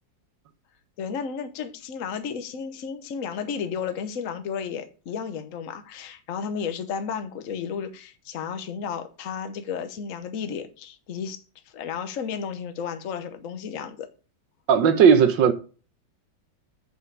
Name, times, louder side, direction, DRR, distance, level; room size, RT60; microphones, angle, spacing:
voice 1, 1.0-11.4 11.7-14.1, left 6 dB, 50° left, 1.2 m, -33 dB
voice 2, 14.7-15.5, right 7 dB, 70° right, 1.5 m, -16 dB
8.1 x 5.5 x 4.7 m
omnidirectional pair, 2.1 m